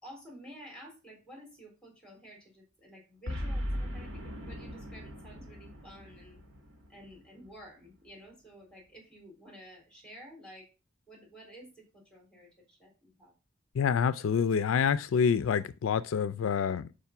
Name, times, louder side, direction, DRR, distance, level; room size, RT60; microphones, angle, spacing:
voice 1, 0.0-6.4 6.9-10.7 11.1-13.3, equal, 5° left, 3.7 m, -51 dB
Boom, 3.3-7.7, equal, 70° right, 1.8 m, -39 dB
voice 2, 13.7-16.9, left 7 dB, 75° left, 0.4 m, -27 dB
5.6 x 5.0 x 5.9 m
head